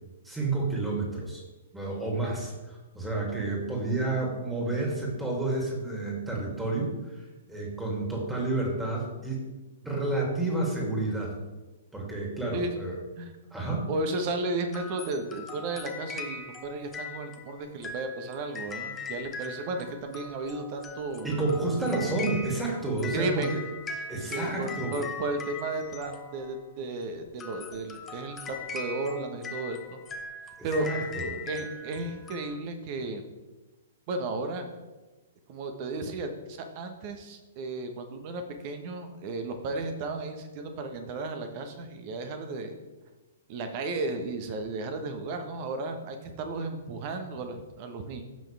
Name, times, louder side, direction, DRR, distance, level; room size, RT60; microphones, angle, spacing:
voice 1, 0.2-1.4 1.7-7.2 7.5-9.4 9.8-11.3 11.9-12.9 13.5-13.9 21.2-23.6 24.1-25.2 30.6-31.3, right 2 dB, 5° right, -2 dB, 2.9 m, -30 dB
voice 2, 13.9-21.3 23.1-23.7 24.2-30.0 30.6-30.9 31.5-33.2 34.1-34.7 35.5-42.7 43.5-48.2, right 2 dB, 40° right, 6 dB, 1.4 m, -34 dB
sound 1, 14.7-26.7 27.3-32.6, left 4 dB, 15° left, 1.0 m, -41 dB
15.5 x 6.0 x 3.6 m, 1.1 s
figure-of-eight pair, 115°, 0 cm